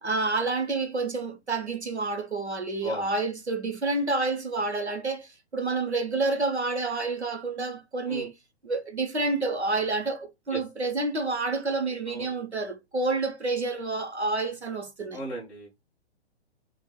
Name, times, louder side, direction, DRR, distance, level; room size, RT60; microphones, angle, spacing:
voice 1, 0.0-8.3 8.6-15.2, right 3 dB, 90° right, 0.9 m, -29 dB
voice 2, 15.1-15.8, equal, 5° left, 0.3 m, -36 dB
3.1 x 2.4 x 3.3 m
figure-of-eight pair, 115°, 33 cm